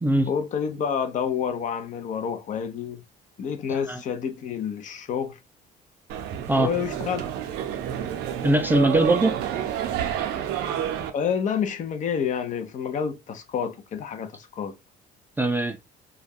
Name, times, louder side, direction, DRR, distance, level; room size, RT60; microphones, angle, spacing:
voice 1, 0.3-3.0 3.4-5.4 6.6-7.2 11.1-14.8, left 7 dB, 50° left, 0.6 m, -28 dB
voice 2, 3.7-4.0 6.5-6.7 8.4-9.4 15.4-15.8, right 1 dB, 10° right, 0.3 m, -21 dB
sound 1, 6.1-11.1, right 10 dB, 85° right, 0.5 m, -29 dB
2.3 x 2.2 x 3.4 m
cardioid pair, 110°, 17 cm